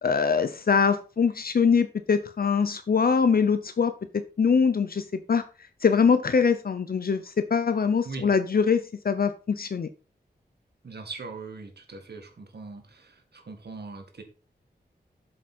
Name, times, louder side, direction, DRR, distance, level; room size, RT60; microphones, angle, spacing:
voice 1, 0.0-5.4 5.8-9.9, left 6 dB, 60° left, 10 dB, 0.7 m, -23 dB
voice 2, 10.8-14.2, right 3 dB, 75° right, 5 dB, 2.0 m, -40 dB
7.7 x 7.3 x 4.4 m, 0.36 s
wide cardioid pair, 100°, 17 cm